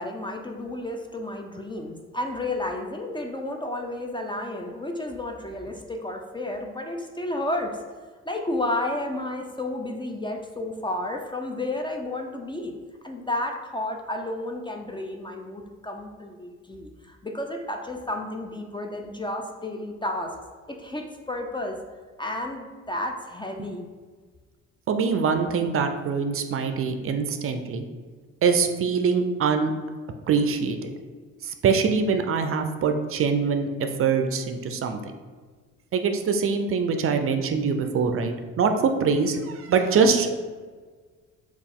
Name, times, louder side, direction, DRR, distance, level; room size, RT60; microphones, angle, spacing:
voice 1, 0.0-7.8 8.2-12.8 13.0-20.4 20.7-21.8 22.2-23.9, left 1 dB, 15° left, 2 dB, 0.3 m, -32 dB
voice 2, 24.9-27.8 28.4-29.7 30.3-30.9 31.4-33.7 34.0-35.1 35.9-40.4, right 5 dB, 45° right, 6 dB, 0.4 m, -23 dB
4.1 x 2.4 x 3.5 m, 1.5 s
cardioid pair, 90°, 30 cm